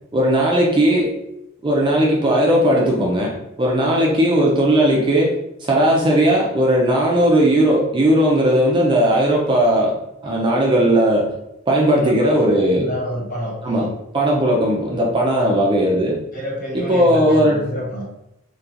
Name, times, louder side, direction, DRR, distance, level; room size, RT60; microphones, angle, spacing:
voice 1, 0.1-1.1 1.6-9.9 10.2-11.3 11.7-12.9 13.6-16.2 16.7-17.7, right 1 dB, 25° right, -2 dB, 0.3 m, -17 dB
voice 2, 12.0-12.4 12.8-13.9 15.4-15.7 16.3-18.0, equal, 40° left, -4 dB, 0.9 m, -29 dB
2.8 x 2.2 x 2.4 m, 0.84 s
head